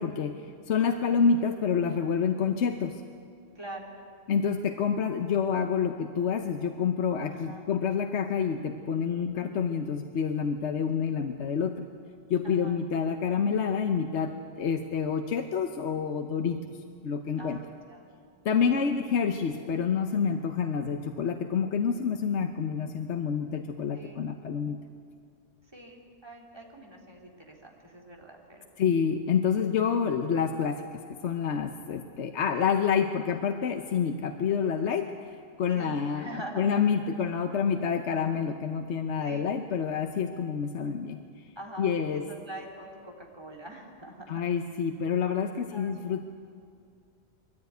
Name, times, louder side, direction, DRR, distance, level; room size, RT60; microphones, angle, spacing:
voice 1, 0.0-3.0 4.3-11.8 12.3-16.8 17.0-17.6 18.4-24.8 28.8-30.8 31.2-35.3 35.6-41.2 41.8-42.3 44.3-46.2, left 6 dB, 70° left, 6 dB, 1.1 m, -28 dB
voice 2, 3.5-3.9 7.3-7.6 12.4-12.8 17.3-18.0 18.6-18.8 23.9-24.2 25.7-28.7 35.7-36.8 39.2-39.5 41.6-44.4 45.5-45.9, right 1 dB, 20° right, 0 dB, 2.7 m, -44 dB
21.0 x 14.5 x 9.3 m, 2.2 s
omnidirectional pair, 1.2 m